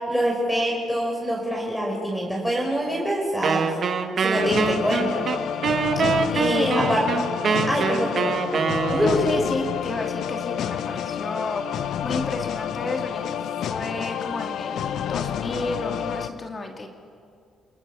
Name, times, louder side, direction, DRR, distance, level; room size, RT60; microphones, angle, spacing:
voice 1, 0.1-3.7 4.2-5.2 6.3-7.0 7.5-8.2 8.9-9.2, equal, ahead, -2 dB, 5.4 m, -25 dB
Wind instrument woodwind instrument, 3.4-9.4, right 6 dB, 55° right, 1.7 m, -24 dB
sound 1, 4.3-16.3, left 9 dB, 75° left, 0.9 m, -29 dB
voice 2, 9.0-13.4 13.7-16.9, left 2 dB, 30° left, 3 dB, 2.4 m, -31 dB
29.0 x 20.5 x 7.1 m, 2.3 s
cardioid pair, 90°, 0 cm